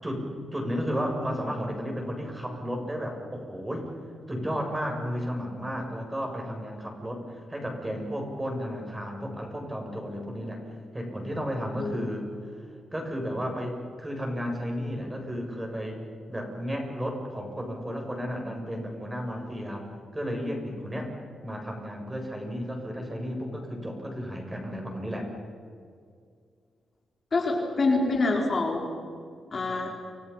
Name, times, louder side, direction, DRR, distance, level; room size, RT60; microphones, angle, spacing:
voice 1, 0.0-3.9 4.3-10.6 10.9-12.3 12.5-16.0 16.3-19.8 20.1-21.1 21.4-25.3, equal, 15° right, 2 dB, 7.6 m, -33 dB
voice 2, 27.3-28.9 29.5-29.9, left 3 dB, 45° left, 1 dB, 4.3 m, -25 dB
29.0 x 26.5 x 5.8 m, 2.1 s
cardioid pair, 70°, 0 cm